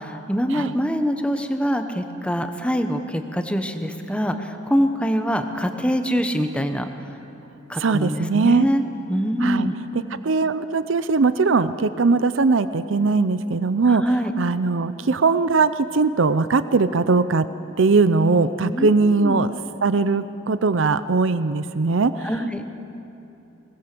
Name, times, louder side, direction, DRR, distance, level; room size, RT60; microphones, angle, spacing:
voice 1, 0.0-6.9 7.7-8.8 9.1-9.7 13.9-14.3 18.6-19.4 22.2-22.6, equal, 5° left, 6 dB, 1.1 m, -24 dB
voice 2, 7.8-8.7 9.4-9.7 10.2-14.0 14.4-17.5 17.8-19.5 19.8-22.3, right 4 dB, 65° right, 13 dB, 0.6 m, -20 dB
22.0 x 20.0 x 6.8 m, 2.9 s
head